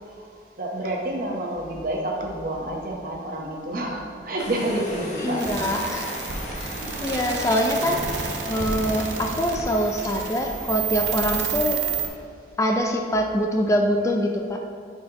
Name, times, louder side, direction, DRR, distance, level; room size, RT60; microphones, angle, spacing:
voice 1, 0.6-5.7, right 1 dB, 50° right, -1 dB, 0.9 m, -29 dB
sound 1, 4.4-11.8, equal, 40° left, 0.9 m, -36 dB
voice 2, 5.1-6.1 6.6-6.7 7.0-11.8 12.6-14.6, equal, 15° left, 2 dB, 0.3 m, -24 dB
sound 2, 5.4-12.1, right 6 dB, 75° right, 0.7 m, -30 dB
8.7 x 4.1 x 2.9 m, 2.2 s
head